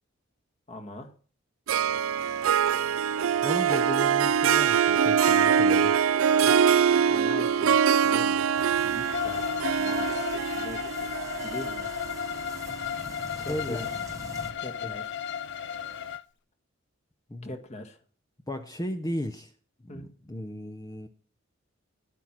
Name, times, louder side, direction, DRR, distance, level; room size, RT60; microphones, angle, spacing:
voice 1, 0.7-1.1 6.4-6.6 7.1-11.1 11.4-11.9 13.4-13.9 14.6-15.1 17.4-18.0 19.9-20.1, left 1 dB, 35° left, 5 dB, 1.6 m, -42 dB
Harp, 1.7-13.1, right 7 dB, 80° right, 0.5 m, -24 dB
voice 2, 3.4-6.0 13.3-13.9 14.8-14.9 17.3-17.5 18.5-19.5 19.8-21.1, left 1 dB, 15° left, 6 dB, 0.7 m, -35 dB
sound 1, 8.6-14.5, right 2 dB, 15° right, 1.0 m, -45 dB
Bowed string instrument, 9.0-16.2, left 8 dB, 60° left, 0.5 m, -34 dB
11.0 x 9.0 x 6.0 m, 0.41 s
head